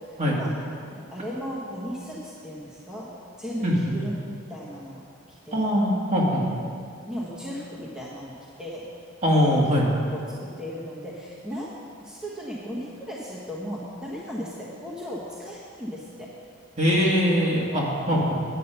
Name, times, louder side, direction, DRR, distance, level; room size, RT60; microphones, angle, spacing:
voice 1, 0.9-3.1 3.4-5.0 5.4-5.7 7.0-8.3 8.6-8.9 9.5-9.7 10.1-11.7 12.0-16.3, equal, 5° right, -7 dB, 1.2 m, -36 dB
voice 2, 3.6-3.9 5.5-6.5 9.2-9.9 16.8-18.3, equal, 35° right, -4 dB, 1.9 m, -22 dB
9.7 x 8.4 x 5.6 m, 2.4 s
head